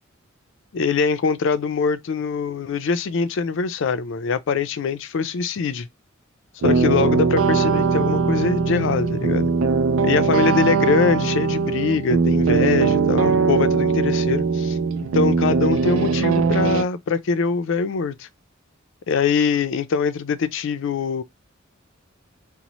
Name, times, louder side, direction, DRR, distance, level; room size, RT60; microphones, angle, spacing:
voice 1, 0.7-5.9 6.6-9.5 10.0-18.3 19.1-21.2, left 5 dB, 65° left, 0.4 m, -23 dB
sound 1, 6.6-16.8, right 5 dB, 75° right, 0.4 m, -20 dB
3.0 x 2.0 x 3.9 m
head